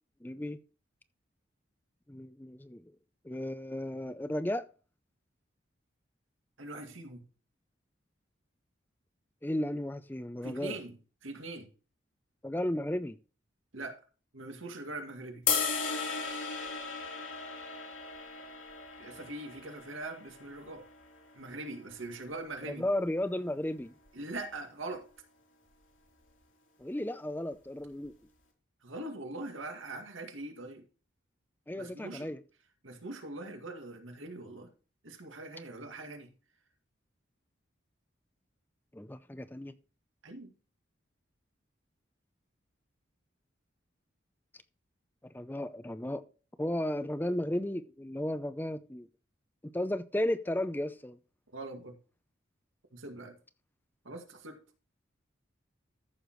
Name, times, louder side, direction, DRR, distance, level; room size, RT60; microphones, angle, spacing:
voice 1, 0.2-0.6 2.1-2.8 3.2-4.6 9.4-10.8 12.4-13.2 22.7-23.9 26.8-28.1 31.7-32.4 38.9-39.7 45.2-46.2 46.6-49.1 49.7-51.2, left 1 dB, 10° left, 0.5 m, -34 dB
voice 2, 6.6-7.2 10.4-11.0 11.2-11.7 13.7-14.0 14.3-15.4 19.0-20.9 21.3-22.8 24.1-25.1 28.8-30.8 31.8-32.3 32.8-34.7 35.0-36.3 40.2-40.5 51.5-52.0 52.9-53.4 54.0-54.6, right 2 dB, 90° right, 2.2 m, -42 dB
sound 1, 15.5-21.7, left 6 dB, 85° left, 3.5 m, -36 dB
14.0 x 6.6 x 3.1 m
head